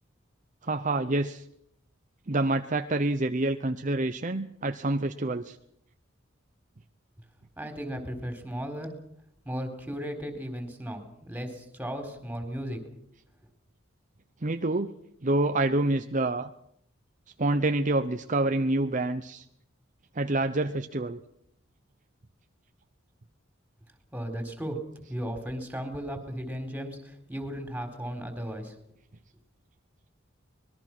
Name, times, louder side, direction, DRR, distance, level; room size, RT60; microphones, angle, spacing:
voice 1, 0.6-1.4 2.3-5.6 14.4-14.9 15.2-16.5 17.4-19.5 20.1-21.2, right 2 dB, 40° right, 7 dB, 0.9 m, -27 dB
voice 2, 7.6-8.9 9.4-12.8 24.1-24.8 25.1-28.7, equal, 10° right, 6 dB, 4.1 m, -35 dB
24.5 x 21.0 x 6.1 m, 0.71 s
head